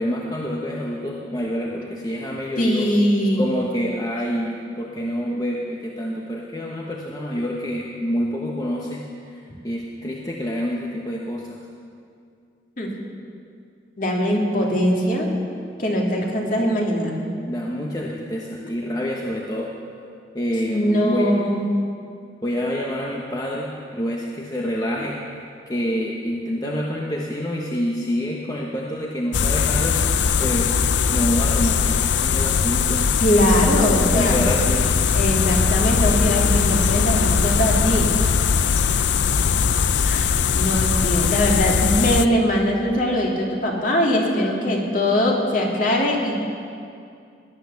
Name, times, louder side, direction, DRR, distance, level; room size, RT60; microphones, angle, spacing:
voice 1, 0.0-2.9 3.4-9.0 9.3-11.6 17.5-19.7 20.3-21.4 22.4-30.0 30.4-30.8 31.1-33.1 33.9-34.9, equal, 20° left, -2 dB, 1.1 m, -27 dB
voice 2, 2.6-3.5 12.8-12.9 14.0-15.3 15.8-17.2 20.7-21.6 33.2-34.5 35.1-38.2 40.0-46.4, equal, 50° left, -1 dB, 2.6 m, -21 dB
sound 1, 29.3-42.3, left 6 dB, 90° left, 0.6 m, -20 dB
18.0 x 10.5 x 7.0 m, 2.4 s
head